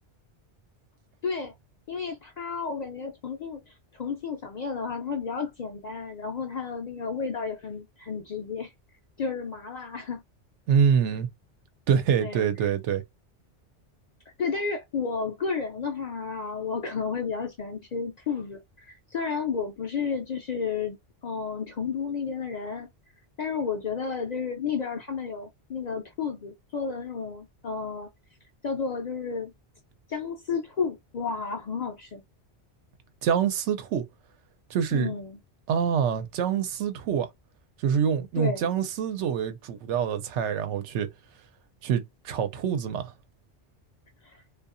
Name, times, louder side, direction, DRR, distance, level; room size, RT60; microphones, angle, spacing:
voice 1, 1.2-1.5 1.9-8.7 9.2-10.2 12.2-12.5 14.4-21.0 21.2-22.9 23.4-28.1 28.6-29.5 30.1-32.2 34.9-35.4 38.4-38.7 44.2-44.4, left 5 dB, 55° left, 0.5 m, -32 dB
voice 2, 10.7-11.3 11.9-13.0 33.2-34.0 34.7-35.1 35.7-37.3 37.8-41.1 41.8-43.1, right 7 dB, 90° right, 0.9 m, -25 dB
2.7 x 2.4 x 2.4 m
omnidirectional pair, 1.2 m